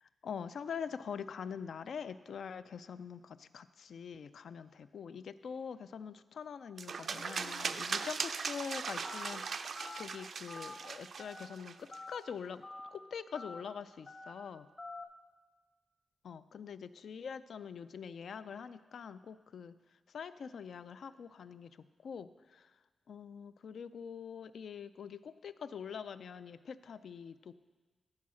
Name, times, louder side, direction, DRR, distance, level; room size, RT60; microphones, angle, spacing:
voice 1, 0.0-12.6 12.9-14.7 16.2-19.7 20.1-21.8 22.0-22.7 23.1-27.5, left 6 dB, 70° left, 13 dB, 0.4 m, -44 dB
sound 1, 6.8-12.0, right 5 dB, 55° right, 0.4 m, -39 dB
Telephone, 9.0-9.3 9.8-10.0 10.5-10.7 11.2-11.5 11.9-12.2 12.6-12.9 13.3-13.6 14.1-14.3 14.8-15.0, left 3 dB, 30° left, 0.8 m, -46 dB
13.5 x 4.7 x 6.2 m, 1.3 s
wide cardioid pair, 150°, 0 cm